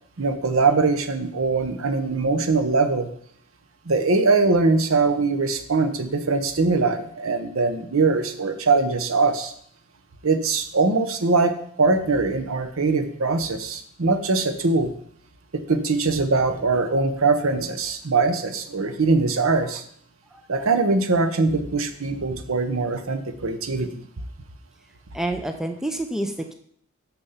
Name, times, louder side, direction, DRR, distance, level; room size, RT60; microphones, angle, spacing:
voice 1, 0.2-3.1 3.9-9.5 10.2-11.5 11.8-14.9 15.5-19.8 20.5-24.0, right 3 dB, 70° right, 9 dB, 0.8 m, -22 dB
voice 2, 25.1-26.5, right 1 dB, ahead, 6 dB, 0.5 m, -28 dB
6.6 x 6.1 x 5.6 m, 0.64 s
head